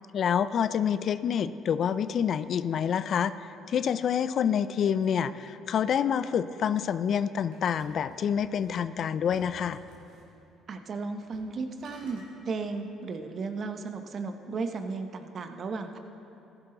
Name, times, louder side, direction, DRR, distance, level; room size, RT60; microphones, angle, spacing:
voice 1, 0.1-3.3 3.7-9.8, left 8 dB, 55° left, 14 dB, 0.4 m, -27 dB
sound 1, 7.5-8.8 9.3-10.3 11.2-11.5 11.8-12.3, right 1 dB, 85° right, 2.8 m, -54 dB
voice 2, 10.7-16.0, right 4 dB, 50° right, 7 dB, 0.9 m, -35 dB
14.5 x 10.5 x 3.9 m, 2.8 s
supercardioid pair, 80°, 0 cm